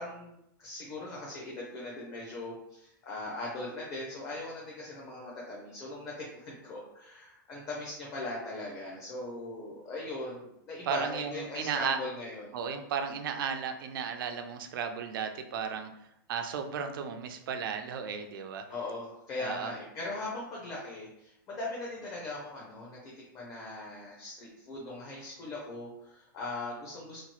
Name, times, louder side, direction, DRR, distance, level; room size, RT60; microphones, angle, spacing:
voice 1, 0.0-12.5 18.7-27.2, left 2 dB, 25° left, -4 dB, 0.6 m, -40 dB
voice 2, 10.8-12.0 12.5-15.9 16.3-18.6 19.4-19.7, right 6 dB, 70° right, 6 dB, 0.4 m, -34 dB
2.9 x 2.3 x 2.9 m, 0.78 s
supercardioid pair, 165°, 12 cm